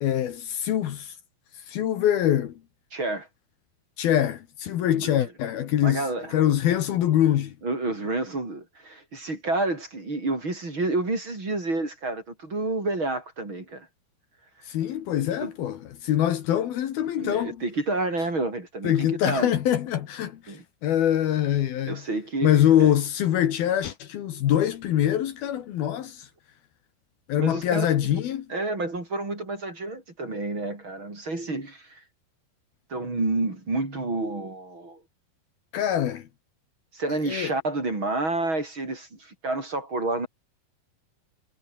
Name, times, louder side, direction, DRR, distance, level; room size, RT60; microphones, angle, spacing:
voice 1, 0.0-1.1 1.7-2.6 4.0-6.1 6.3-7.5 14.7-17.6 18.8-20.6 20.8-22.0 22.4-26.3 27.3-28.5 35.7-36.3 37.3-37.5, left 11 dB, 70° left, 3.3 m, -24 dB
voice 2, 2.9-3.3 4.9-5.1 5.8-6.4 7.6-13.9 15.4-15.5 17.1-19.5 20.5-20.6 21.9-22.9 27.4-27.9 28.1-28.2 28.5-32.0 32.9-35.0 36.9-40.3, right 2 dB, 30° right, 6.3 m, -29 dB
omnidirectional pair, 4.8 m